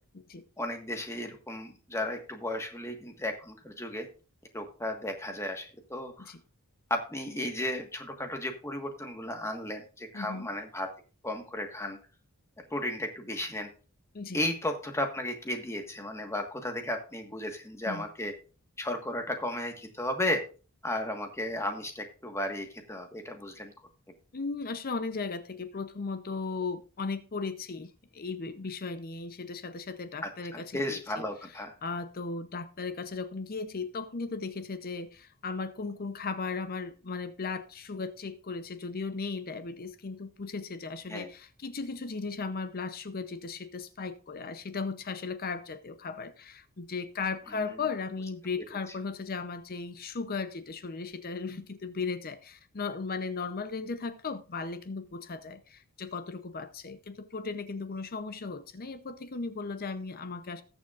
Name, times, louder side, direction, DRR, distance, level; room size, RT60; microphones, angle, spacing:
voice 1, 0.6-4.0 4.5-6.3 6.9-10.9 11.2-12.0 12.7-13.7 14.3-18.3 18.8-20.4 20.8-23.7 30.5-31.7 41.1-41.3 47.6-47.8, left 1 dB, 10° left, 1.5 m, -34 dB
voice 2, 10.1-10.5 14.1-14.4 17.9-18.0 24.3-31.2 31.8-60.6, left 4 dB, 40° left, 0.6 m, -36 dB
19.5 x 7.1 x 2.5 m
head